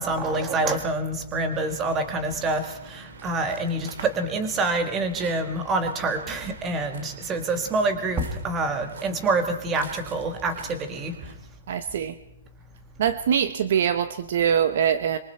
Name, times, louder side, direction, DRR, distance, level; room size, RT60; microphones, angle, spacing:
voice 1, 0.0-11.1, right 2 dB, 10° right, 8 dB, 1.5 m, -26 dB
Waves surf, 1.5-11.3, right 4 dB, 60° right, 2.5 m, -46 dB
voice 2, 11.7-12.1 13.0-15.2, right 8 dB, 45° right, 13 dB, 0.8 m, -23 dB
25.5 x 23.0 x 4.4 m, 0.81 s
hypercardioid pair, 180°, 0 cm